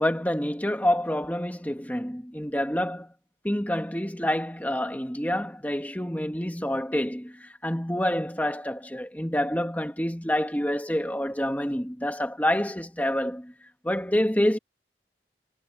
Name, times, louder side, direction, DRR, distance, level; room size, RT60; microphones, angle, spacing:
voice 1, 0.0-3.1 3.4-13.5 13.8-14.6, equal, 10° left, 2.3 m, -27 dB
head